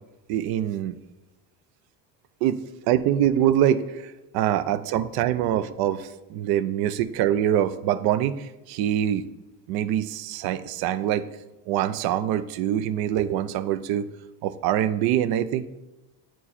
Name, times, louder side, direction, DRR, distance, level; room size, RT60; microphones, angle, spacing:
voice 1, 0.3-1.0 2.4-2.6 2.9-9.3 9.7-11.3 11.7-14.1 14.4-15.6, right 11 dB, 70° right, 14 dB, 0.6 m, -24 dB
9.0 x 4.6 x 4.2 m, 1.0 s
supercardioid pair, 110°, 39 cm